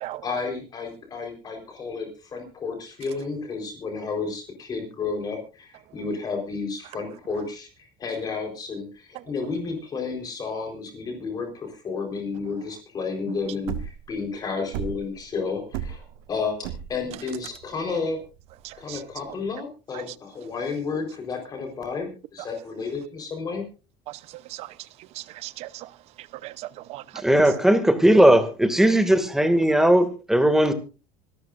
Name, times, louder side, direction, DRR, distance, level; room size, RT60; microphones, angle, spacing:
voice 1, 0.2-18.2 18.8-23.6, left 4 dB, 30° left, 4.3 m, -32 dB
sound 1, 13.4-19.3, right 9 dB, 85° right, 1.8 m, -35 dB
voice 2, 18.6-19.0 19.9-20.1 24.1-24.9 25.1-25.9 26.2-27.2, right 16 dB, 60° right, 0.8 m, -38 dB
voice 3, 27.1-30.7, right 1 dB, 5° right, 2.2 m, -18 dB
25.5 x 13.0 x 2.6 m
cardioid pair, 130°, 12 cm